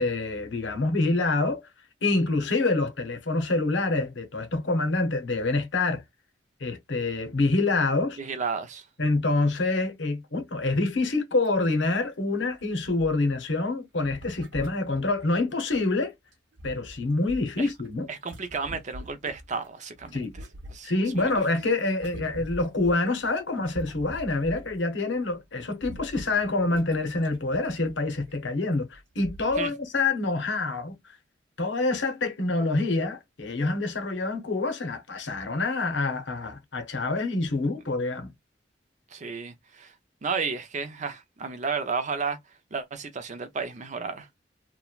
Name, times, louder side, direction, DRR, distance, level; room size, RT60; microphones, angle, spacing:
voice 1, 0.0-1.6 2.0-6.0 6.6-8.2 9.0-16.1 16.6-18.1 20.1-20.3 20.8-31.2 31.6-38.3, left 2 dB, 85° left, 0.8 m, -26 dB
voice 2, 8.2-8.8 17.6-17.7 18.1-20.2 20.7-21.3 29.6-29.7 39.1-39.9 40.2-42.4 42.7-44.3, right 5 dB, 40° right, 0.5 m, -32 dB
sound 1, 11.4-11.6 11.9-12.0 12.5-13.4 14.0-15.8 16.3-19.7 20.0-24.8 25.1-25.3 25.6-28.3 28.9-29.0 29.2-29.7 30.1-30.2, equal, 75° right, 0.8 m, -44 dB
3.0 x 2.1 x 2.3 m
head